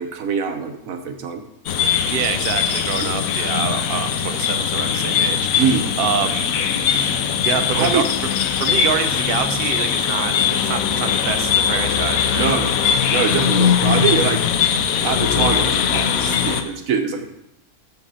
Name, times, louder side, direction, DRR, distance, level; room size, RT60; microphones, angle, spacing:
voice 1, 0.0-1.4 3.0-3.2 5.6-5.9 7.7-8.0 12.4-12.8 13.1-14.4 15.0-17.3, right 6 dB, 80° right, 6 dB, 1.3 m, -23 dB
sound 1, 1.7-16.6, left 8 dB, 85° left, 1.1 m, -20 dB
voice 2, 2.1-6.5 6.9-7.2 7.4-8.0 8.6-12.5, right 8 dB, 55° right, 8 dB, 0.7 m, -26 dB
7.1 x 5.8 x 5.5 m, 0.84 s
omnidirectional pair, 1.4 m